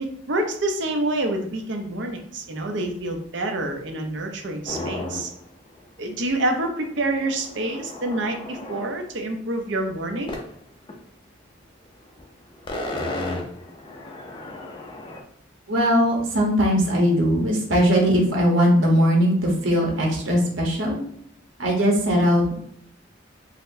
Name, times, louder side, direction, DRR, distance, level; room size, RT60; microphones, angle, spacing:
voice 1, 0.0-5.3 6.0-10.3, right 2 dB, 65° right, 3 dB, 0.6 m, -27 dB
sound 1, 4.7-5.4 5.8-5.9 6.1-8.9 10.3-10.5 10.9-11.0 12.1-12.3 12.5-15.2, left 2 dB, 25° left, 0.4 m, -34 dB
voice 2, 15.7-21.0 21.6-22.5, equal, 85° right, 0 dB, 0.9 m, -20 dB
4.0 x 2.0 x 2.6 m, 0.68 s
head